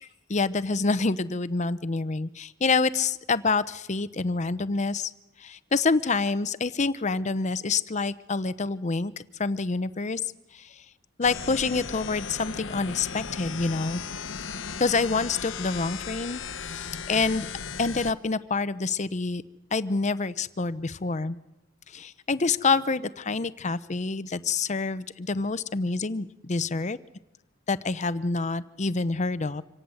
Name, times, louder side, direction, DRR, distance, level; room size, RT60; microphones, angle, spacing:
voice 1, 0.3-5.1 5.4-9.1 9.4-10.2 10.5-10.8 11.2-14.0 14.8-17.5 17.8-19.4 19.7-21.4 21.9-27.0 27.7-29.6, left 4 dB, 40° left, 14 dB, 0.8 m, -27 dB
sound 1, 11.2-18.1, left 6 dB, 75° left, 1.0 m, -36 dB
26.0 x 18.0 x 7.9 m, 0.97 s
head